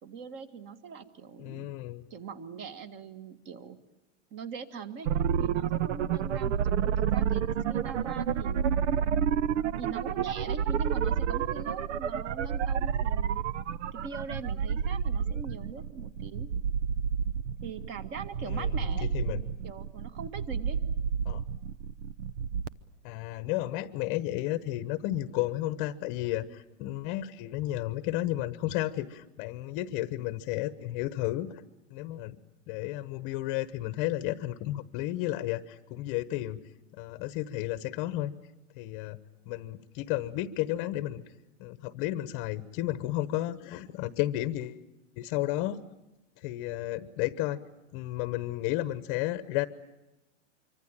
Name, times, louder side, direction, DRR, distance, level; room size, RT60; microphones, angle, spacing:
voice 1, 0.0-1.7 2.1-3.8 4.3-5.1 5.4-8.7 9.8-13.4 13.9-16.5 17.6-19.1 19.6-20.8, right 5 dB, 30° right, 11 dB, 1.8 m, -42 dB
voice 2, 1.4-2.0 18.4-19.5 21.2-21.4 23.0-31.6 31.9-32.4 32.7-36.6 36.9-38.3 38.8-39.2 39.5-41.3 41.6-44.8 45.2-45.8 46.4-47.6 47.9-49.7, left 15 dB, 35° left, 13 dB, 1.0 m, -32 dB
sound 1, 5.1-22.7, right 8 dB, 75° right, 1.1 m, -30 dB
25.5 x 24.5 x 8.9 m, 1.0 s
supercardioid pair, 160°, 37 cm